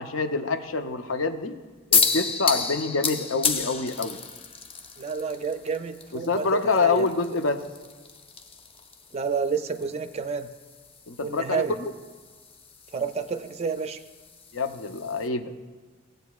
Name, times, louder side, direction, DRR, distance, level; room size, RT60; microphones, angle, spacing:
voice 1, 0.0-1.6 1.9-4.2 6.1-7.6 11.1-11.9 14.5-15.5, left 4 dB, 75° left, 7 dB, 0.7 m, -26 dB
sound 1, 1.9-15.3, left 5 dB, 30° left, 0.5 m, -32 dB
voice 2, 5.0-6.5 6.8-7.1 9.1-10.5 11.2-11.8 12.9-14.0, right 5 dB, 30° right, 10 dB, 0.4 m, -29 dB
17.0 x 7.9 x 2.3 m, 1.4 s
head